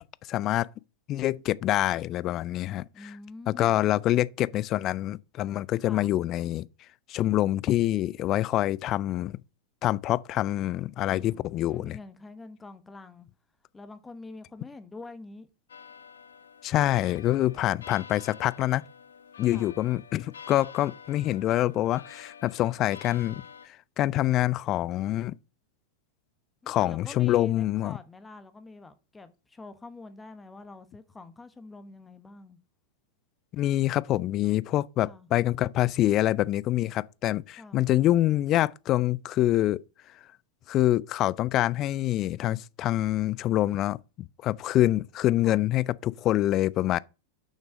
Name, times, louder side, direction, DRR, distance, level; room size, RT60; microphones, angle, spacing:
voice 1, 0.3-0.7 1.1-2.9 3.5-6.7 7.1-9.3 9.8-12.0 16.6-18.8 19.4-25.4 26.7-28.0 33.5-39.8 40.7-47.0, left 14 dB, 35° left, 0.4 m, -26 dB
voice 2, 2.9-3.8 5.8-6.1 11.0-13.3 13.7-15.5 19.5-19.8 26.6-32.6 35.0-35.3 37.6-37.9 45.4-45.6, left 3 dB, 10° left, 1.1 m, -46 dB
sound 1, 15.7-23.7, left 7 dB, 70° left, 0.8 m, -48 dB
6.6 x 6.1 x 6.2 m
figure-of-eight pair, 90°, 0 cm